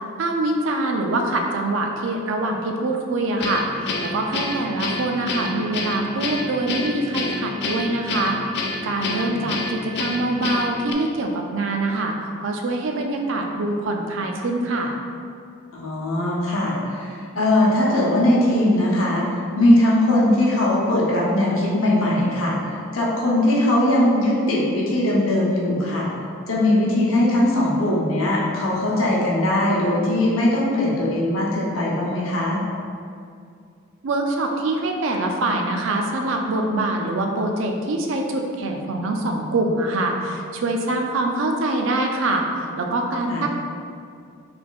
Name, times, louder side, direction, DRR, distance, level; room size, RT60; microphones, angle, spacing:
voice 1, 0.2-3.6 4.0-8.4 8.8-12.1 12.4-14.9 34.0-42.4 42.8-43.5, right 2 dB, 65° right, 2 dB, 0.4 m, -24 dB
Guitar, 3.4-10.9, left 3 dB, 55° left, 0.3 m, -28 dB
voice 2, 15.7-19.2 19.6-22.5 22.9-26.1 26.5-32.6 43.3-43.4, left 1 dB, 80° left, -4 dB, 0.7 m, -20 dB
3.8 x 3.3 x 2.3 m, 2.3 s
head